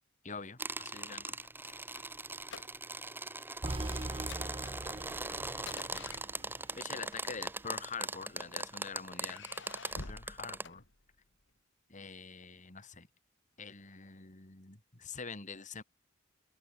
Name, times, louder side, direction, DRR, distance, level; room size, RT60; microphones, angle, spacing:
voice 1, 0.2-1.4 6.8-9.4 10.1-10.8 11.9-13.1 13.6-15.8, left 5 dB, 40° left, 2.4 m, -45 dB
sound 1, 0.6-10.6, right 2 dB, 10° right, 2.9 m, -41 dB
sound 2, 1.2-3.1 3.4-3.6 4.0-6.8 7.7-8.5 9.1-11.4, left 4 dB, 65° left, 2.2 m, -50 dB
sound 3, 3.6-7.7, right 1 dB, 25° right, 1.1 m, -42 dB
open air
head